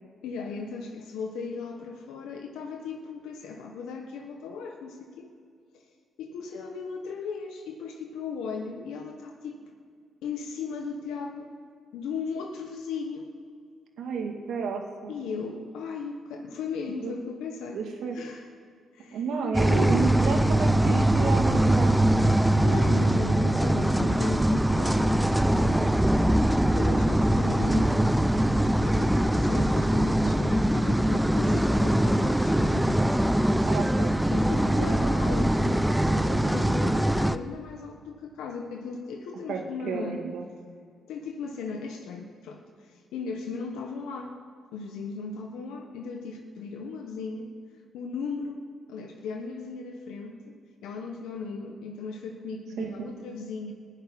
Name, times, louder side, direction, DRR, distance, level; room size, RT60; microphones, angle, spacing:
voice 1, 0.2-5.3 5.7-5.8 6.2-9.6 10.2-11.5 11.9-13.3 15.1-17.8 18.1-18.5 18.9-19.2 19.7-20.1 22.6-26.0 26.7-28.0 28.7-33.0 34.3-40.2 41.1-44.4 44.7-47.5 47.9-53.7, left 5 dB, 90° left, 2 dB, 1.3 m, -37 dB
voice 2, 14.0-15.2 16.9-17.1 17.7-18.2 19.1-22.0 33.6-35.5 39.5-40.5 52.8-53.1, right 5 dB, 75° right, 2 dB, 2.2 m, -32 dB
sound 1, 19.5-37.4, right 1 dB, 5° right, 0.5 m, -22 dB
15.5 x 6.5 x 10.0 m, 2.2 s
cardioid pair, 90°, 0 cm